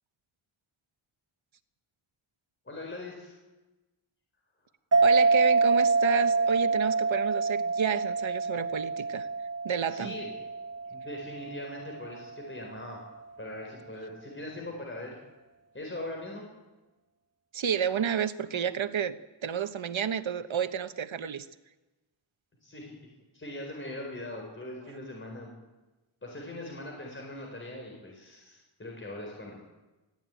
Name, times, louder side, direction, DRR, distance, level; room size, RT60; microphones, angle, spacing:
voice 1, 2.6-3.4 9.9-10.3 10.9-13.0 13.4-15.2 15.7-16.4 22.6-23.1 23.3-25.5 26.2-29.6, left 1 dB, 25° left, -1 dB, 4.6 m, -41 dB
sound 1, 4.9-12.0, right 4 dB, 30° right, 0.9 m, -26 dB
voice 2, 5.0-9.3 9.6-10.1 17.5-19.2 19.4-21.5, right 7 dB, 70° right, 10 dB, 1.1 m, -31 dB
25.0 x 16.5 x 9.2 m, 1.1 s
wide cardioid pair, 160°, 48 cm